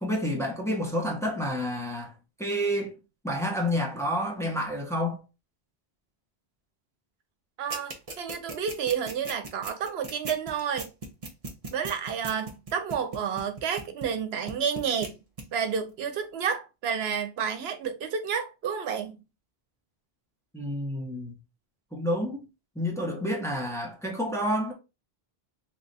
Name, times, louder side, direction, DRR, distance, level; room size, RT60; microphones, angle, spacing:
voice 1, 0.0-2.1 2.4-3.0 3.2-5.2 20.5-21.3 21.9-22.4 22.8-24.7, equal, 5° left, 0.7 m, -29 dB
voice 2, 7.6-10.9 11.7-15.2 15.5-19.2, right 7 dB, 85° right, 0.9 m, -30 dB
sound 1, 7.7-14.2 14.5-15.1 15.4-15.5, right 3 dB, 40° right, 0.7 m, -37 dB
3.2 x 2.3 x 3.9 m
omnidirectional pair, 1.0 m